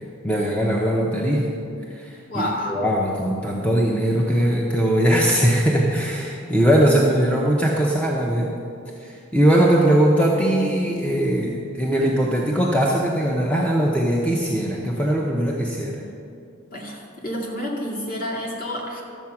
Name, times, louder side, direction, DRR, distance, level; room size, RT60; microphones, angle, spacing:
voice 1, 0.2-1.5 1.9-8.6 9.0-15.9, right 1 dB, 5° left, -2 dB, 0.7 m, -20 dB
voice 2, 2.3-2.8 16.7-19.0, left 1 dB, 40° left, -3 dB, 2.1 m, -29 dB
12.5 x 7.6 x 5.9 m, 2.5 s
head